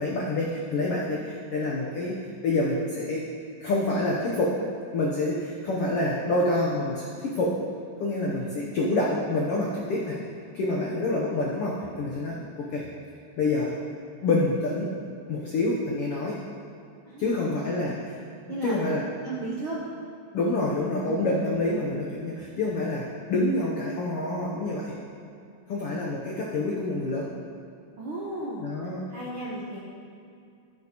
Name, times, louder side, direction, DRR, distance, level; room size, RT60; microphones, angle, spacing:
voice 1, 0.0-2.2 2.4-3.2 3.6-4.6 4.9-7.6 8.0-10.2 10.5-12.9 13.4-13.8 14.2-14.9 15.3-16.4 17.2-18.2 18.6-19.0 20.3-25.0 25.7-27.3 28.6-29.0, left 2 dB, 75° left, -4 dB, 1.3 m, -27 dB
voice 2, 17.1-17.7 18.5-18.8 19.2-19.8 21.0-21.2 28.0-28.7 29.1-29.8, right 2 dB, 70° right, -6 dB, 1.2 m, -35 dB
14.0 x 7.9 x 3.0 m, 2.6 s
omnidirectional pair, 3.9 m